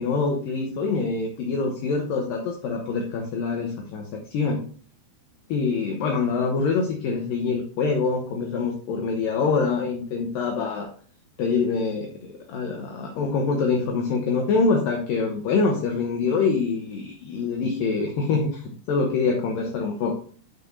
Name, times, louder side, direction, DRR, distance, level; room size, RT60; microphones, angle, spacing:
voice 1, 0.0-4.7 5.5-10.9 11.4-20.2, left 4 dB, 70° left, 1 dB, 2.3 m, -25 dB
12.0 x 5.6 x 2.7 m, 0.43 s
omnidirectional pair, 5.0 m